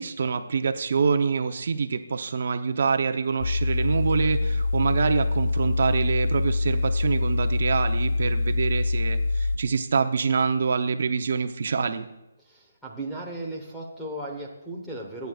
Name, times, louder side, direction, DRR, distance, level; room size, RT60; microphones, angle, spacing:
voice 1, 0.0-12.1, right 5 dB, 50° right, 8 dB, 0.7 m, -26 dB
sound 1, 3.4-9.6, left 3 dB, 40° left, 0.4 m, -25 dB
voice 2, 12.4-15.3, right 1 dB, ahead, -4 dB, 1.1 m, -36 dB
27.5 x 9.2 x 2.4 m, 0.94 s
hypercardioid pair, 175°, 0 cm